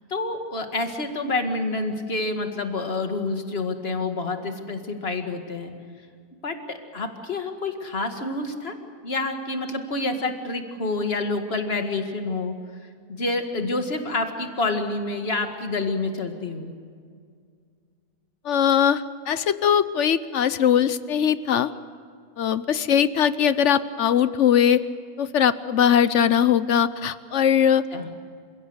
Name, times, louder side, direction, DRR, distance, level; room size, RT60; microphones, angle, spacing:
voice 1, 0.1-5.7 6.4-8.7 9.0-12.6 13.1-16.7 27.9-28.1, left 3 dB, 40° left, 5 dB, 2.2 m, -28 dB
voice 2, 18.4-21.7 22.4-24.8 25.2-27.8, left 9 dB, 60° left, 15 dB, 0.9 m, -20 dB
29.0 x 17.0 x 8.1 m, 2.1 s
omnidirectional pair, 1.6 m